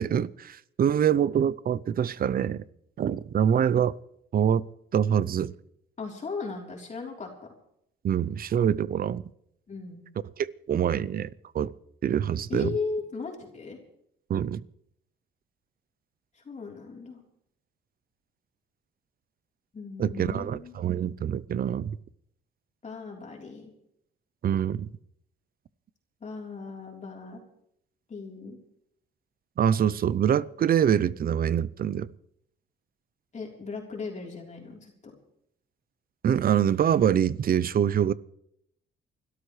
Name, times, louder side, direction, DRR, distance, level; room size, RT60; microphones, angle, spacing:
voice 1, 0.0-2.6 3.0-3.9 4.3-4.6 4.9-5.5 8.0-9.2 10.4-11.3 11.5-11.7 12.0-12.7 14.3-14.6 20.0-22.0 24.4-24.9 29.6-32.1 36.2-38.1, right 9 dB, 45° right, 0.6 m, -25 dB
voice 2, 6.0-7.3 9.7-10.0 12.5-13.8 16.4-17.2 19.7-20.7 22.8-23.7 26.2-27.4 28.1-28.6 33.3-35.1, left 4 dB, 35° left, 3.6 m, -37 dB
29.5 x 13.0 x 3.2 m
cardioid pair, 90°, 20 cm